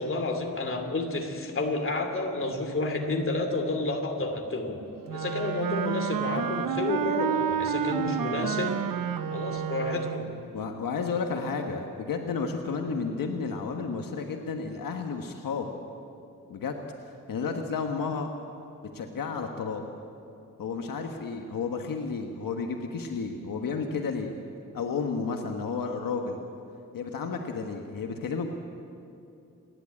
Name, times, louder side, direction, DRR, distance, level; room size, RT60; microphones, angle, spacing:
voice 1, 0.0-4.8 5.1-8.8 9.3-10.4, left 2 dB, 40° left, 4 dB, 2.8 m, -30 dB
Wind instrument woodwind instrument, 5.1-10.4, right 8 dB, 85° right, 0.8 m, -30 dB
voice 2, 10.5-15.7 16.5-18.3 18.9-19.8 20.6-24.3 24.7-26.4 26.9-28.5, left 5 dB, 85° left, 3 dB, 1.4 m, -32 dB
28.5 x 11.5 x 8.5 m, 2.7 s
wide cardioid pair, 105°, 33 cm